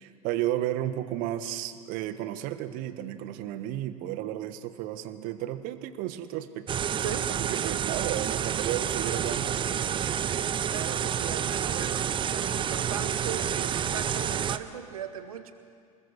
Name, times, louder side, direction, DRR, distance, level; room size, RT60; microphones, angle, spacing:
voice 1, 0.0-6.9 7.3-10.3, right 13 dB, 50° right, 11 dB, 1.5 m, -33 dB
sound 1, 6.7-14.6, right 8 dB, 25° right, 0.9 m, -29 dB
voice 2, 6.9-7.3 10.7-15.5, right 8 dB, 70° right, 8 dB, 1.9 m, -38 dB
27.5 x 20.5 x 6.6 m, 2.2 s
figure-of-eight pair, 80°, 19 cm